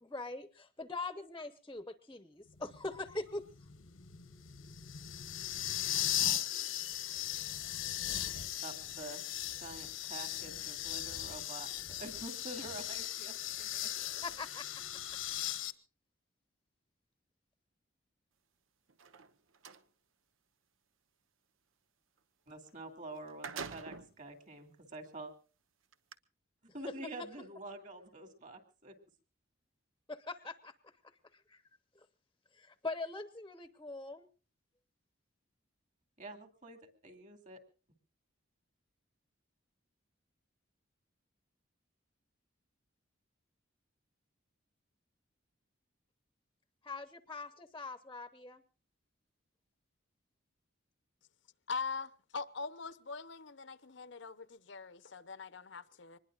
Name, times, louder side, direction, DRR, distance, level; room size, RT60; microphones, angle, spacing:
voice 1, 0.0-3.5 14.2-14.8 15.1-15.2 30.1-30.7 31.3-31.6 32.5-34.3 46.8-48.6, left 3 dB, 15° left, 0.8 m, -42 dB
sound 1, 2.6-15.7, left 12 dB, 80° left, 1.1 m, -38 dB
voice 2, 8.6-9.2 9.6-13.9 22.5-25.3 26.7-29.0 36.2-37.6, right 2 dB, 40° right, 2.6 m, -47 dB
sound 2, 18.9-19.8 22.7-22.8 23.1-24.2 24.9-25.0 25.9-26.1, right 5 dB, 85° right, 1.0 m, -45 dB
voice 3, 51.7-56.2, left 4 dB, 65° left, 0.8 m, -42 dB
25.0 x 20.5 x 2.4 m
head